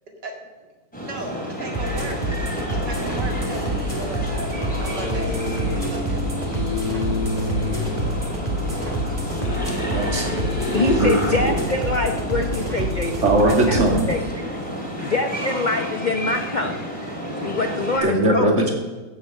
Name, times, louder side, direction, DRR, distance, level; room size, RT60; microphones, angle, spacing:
sound 1, 0.9-18.0, equal, 5° left, 2.9 m, -30 dB
voice 1, 1.0-2.4 2.7-5.3 5.7-6.9, right 2 dB, 65° right, 2 dB, 2.8 m, -36 dB
sound 2, 1.7-14.2, right 1 dB, 20° right, 2.4 m, -28 dB
sound 3, 3.0-11.3, left 3 dB, 30° left, 2.5 m, -30 dB
voice 2, 9.9-10.4 11.0-11.5 13.2-14.1 15.0-15.1 18.0-18.7, right 1 dB, 40° right, 2 dB, 2.6 m, -20 dB
voice 3, 10.7-13.3 13.7-13.8 14.1-14.5 15.0-16.8 17.4-18.7, left 2 dB, 50° left, 6 dB, 0.5 m, -25 dB
15.0 x 7.9 x 6.4 m, 1.3 s
omnidirectional pair, 2.0 m